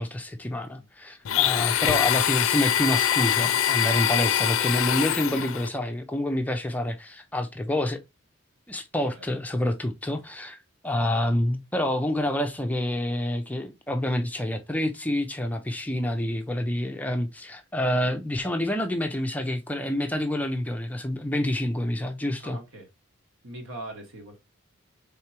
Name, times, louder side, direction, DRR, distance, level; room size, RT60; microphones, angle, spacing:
voice 1, 0.0-8.0 8.7-22.6, left 1 dB, 5° left, 0.4 m, -28 dB
Domestic sounds home sounds, 1.3-5.7, left 10 dB, 75° left, 0.4 m, -24 dB
voice 2, 22.4-22.9 23.4-24.4, right 1 dB, 75° right, 1.7 m, -41 dB
4.5 x 3.6 x 2.9 m
head